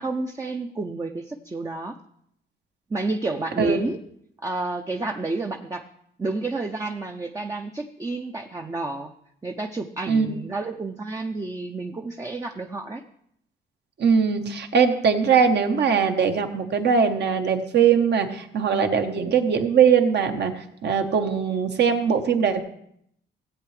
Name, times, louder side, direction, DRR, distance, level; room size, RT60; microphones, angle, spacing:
voice 1, 0.0-2.0 2.9-4.0 4.4-5.9 6.2-9.1 9.4-13.0, right 3 dB, 15° right, 3 dB, 0.6 m, -30 dB
voice 2, 10.1-10.4 14.0-22.6, right 6 dB, 60° right, 6 dB, 1.2 m, -21 dB
16.5 x 8.0 x 3.3 m, 0.72 s
cardioid pair, 90°, 20 cm